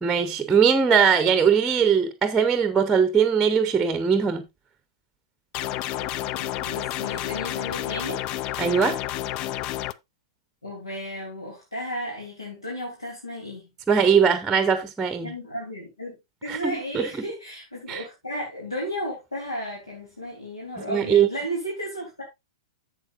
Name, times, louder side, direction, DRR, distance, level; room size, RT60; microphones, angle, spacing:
voice 1, 0.0-4.4 8.6-9.0 13.9-15.3 16.5-17.1 17.9-18.0 20.9-21.3, right 7 dB, 10° right, 0.9 m, -20 dB
sound 1, 5.5-9.9, left 13 dB, 35° left, 0.4 m, -30 dB
voice 2, 6.3-8.3 10.6-13.7 15.2-16.2 16.4-22.2, equal, 80° left, 3.2 m, -34 dB
12.0 x 7.7 x 2.5 m
figure-of-eight pair, 100°, 3 cm